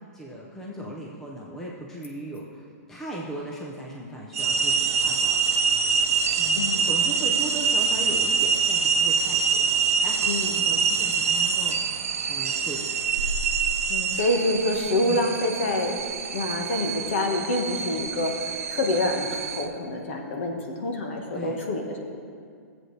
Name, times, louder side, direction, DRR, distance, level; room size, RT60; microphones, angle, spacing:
voice 1, 0.1-5.4 6.3-10.4 10.6-13.0 15.0-15.3 21.3-21.6, right 1 dB, 5° left, -3 dB, 0.5 m, -38 dB
sound 1, 4.3-19.7, right 6 dB, 60° right, 0.8 m, -25 dB
voice 2, 6.6-6.9 10.3-10.6 13.9-16.0 16.3-22.2, left 1 dB, 45° left, 3 dB, 1.3 m, -27 dB
16.0 x 7.7 x 3.3 m, 2.2 s
hypercardioid pair, 175°, 9 cm